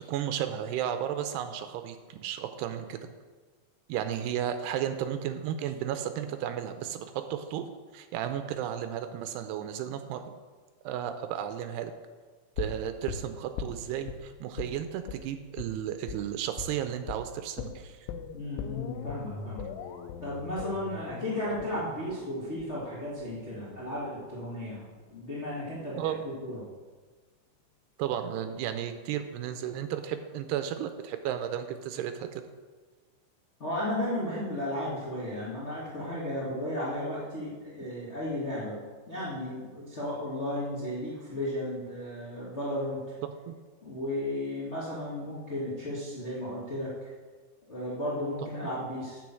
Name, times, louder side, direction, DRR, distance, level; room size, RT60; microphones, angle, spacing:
voice 1, 0.0-3.0 3.9-7.6 7.9-10.2 10.8-11.9 12.6-18.1 26.0-26.2 28.0-32.4 43.2-43.5 48.6-48.7, right 10 dB, 85° right, 8 dB, 2.4 m, -33 dB
sound 1, 12.6-14.2 14.6-14.8 15.1-15.2 15.6-15.7 16.1-16.2 16.6-16.8 17.1-17.2 17.6-23.6 23.9-24.0, left 6 dB, 85° left, 3.2 m, -39 dB
voice 2, 18.3-19.7 20.2-24.8 25.1-26.6 33.6-38.8 39.1-43.0 43.8-47.1 47.7-49.2, left 1 dB, 30° left, -9 dB, 1.3 m, -34 dB
9.4 x 7.0 x 7.5 m, 1.4 s
omnidirectional pair, 5.3 m